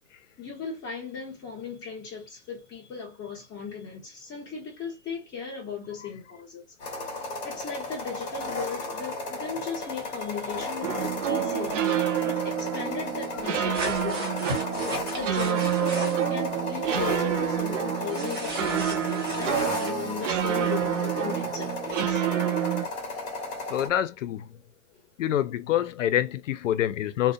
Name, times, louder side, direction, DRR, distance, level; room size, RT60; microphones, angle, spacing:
voice 1, 0.4-6.6 7.4-14.6 15.1-22.2, left 6 dB, 10° left, 1.1 m, -37 dB
sound 1, 6.8-23.9, left 2 dB, 35° left, 1.0 m, -34 dB
sound 2, 10.8-22.9, right 10 dB, 80° right, 0.7 m, -28 dB
sound 3, 13.7-16.3 18.1-19.9, right 1 dB, 20° right, 0.6 m, -36 dB
voice 2, 23.7-24.4 25.2-27.3, left 11 dB, 90° left, 0.5 m, -26 dB
2.5 x 2.1 x 2.6 m
hypercardioid pair, 160°, 37 cm